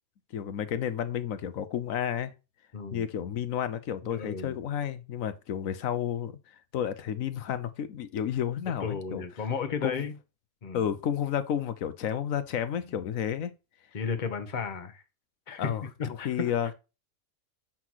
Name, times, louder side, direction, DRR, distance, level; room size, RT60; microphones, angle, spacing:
voice 1, 0.3-2.3 2.9-9.2 9.8-10.0 10.7-13.5 15.6-16.8, left 9 dB, 70° left, 1.1 m, -31 dB
voice 2, 2.7-3.1 4.0-4.5 8.8-10.1 10.6-10.8 13.9-15.0 15.5-15.7 16.0-16.3, left 6 dB, 35° left, 1.0 m, -33 dB
7.4 x 5.8 x 3.0 m
omnidirectional pair, 1.5 m